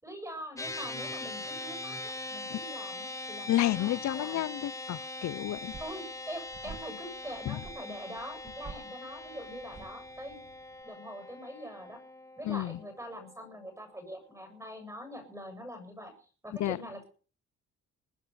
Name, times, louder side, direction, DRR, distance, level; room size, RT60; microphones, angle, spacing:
voice 1, 0.0-4.4 5.8-10.4 10.8-12.0 12.4-16.1 16.4-17.1, equal, 10° right, 7.2 m, -44 dB
sound 1, 0.6-14.1, left 2 dB, 10° left, 1.6 m, -42 dB
voice 2, 3.5-5.7 7.5-7.6 12.4-12.8 16.6-16.8, left 14 dB, 65° left, 0.7 m, -30 dB
sound 2, 5.4-10.8, right 5 dB, 40° right, 2.8 m, -51 dB
21.5 x 8.7 x 7.0 m
cardioid pair, 90°, 30 cm